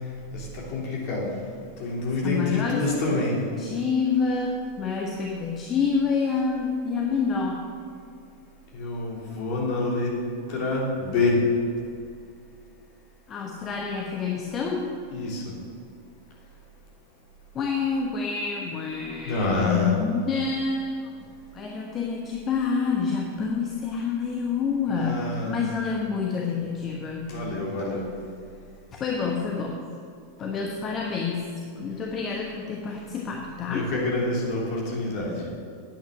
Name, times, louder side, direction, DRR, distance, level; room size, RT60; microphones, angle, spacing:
voice 1, 0.3-1.3 1.8-3.4 8.7-10.2 10.5-11.4 15.1-15.5 19.2-19.9 24.9-25.6 27.3-28.1 33.7-35.5, left 2 dB, 45° left, -3 dB, 3.2 m, -27 dB
voice 2, 2.2-2.9 3.6-7.6 13.3-14.9 17.5-21.1 21.5-27.4 28.9-29.8 30.4-33.9, left 5 dB, 25° left, 1 dB, 1.1 m, -28 dB
10.5 x 8.8 x 6.4 m, 2.4 s
figure-of-eight pair, 90°, 0 cm